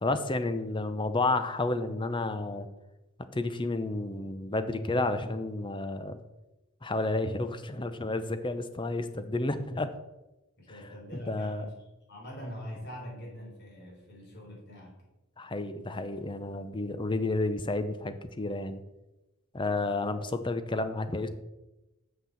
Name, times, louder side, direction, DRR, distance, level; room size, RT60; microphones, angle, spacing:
voice 1, 0.0-2.7 3.3-6.2 6.8-9.9 10.7-10.8 11.1-11.7 15.4-18.8 19.5-21.3, left 2 dB, 20° left, 10 dB, 0.7 m, -31 dB
voice 2, 10.6-11.7 12.1-15.0, equal, 50° left, -2 dB, 3.9 m, -43 dB
7.5 x 6.5 x 7.2 m, 1.0 s
head